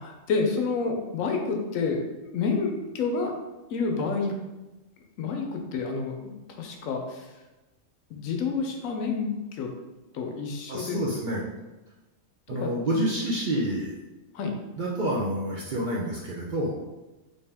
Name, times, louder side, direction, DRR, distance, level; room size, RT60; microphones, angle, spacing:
voice 1, 0.0-3.3 3.7-4.3 5.2-6.2 6.6-7.3 8.1-9.7 10.1-11.0 12.6-12.7 14.3-14.5, left 4 dB, 85° left, 2 dB, 1.0 m, -29 dB
voice 2, 10.7-11.4 12.5-13.9 14.8-16.8, right 1 dB, 55° right, -4 dB, 0.6 m, -28 dB
3.6 x 2.7 x 3.4 m, 1.1 s
omnidirectional pair, 1.4 m